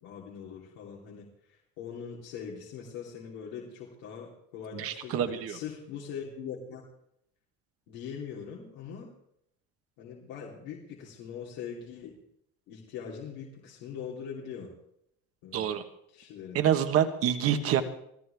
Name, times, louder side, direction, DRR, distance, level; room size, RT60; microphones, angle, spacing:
voice 1, 0.0-6.8 7.9-9.1 10.0-12.2 12.7-14.7 15.4-15.7 16.1-16.6 17.7-17.8, left 7 dB, 85° left, -4 dB, 3.3 m, -42 dB
voice 2, 4.7-5.6 15.5-15.8 16.5-17.8, right 9 dB, 50° right, 8 dB, 1.3 m, -26 dB
24.0 x 13.5 x 3.5 m, 0.74 s
cardioid pair, 155°, 31 cm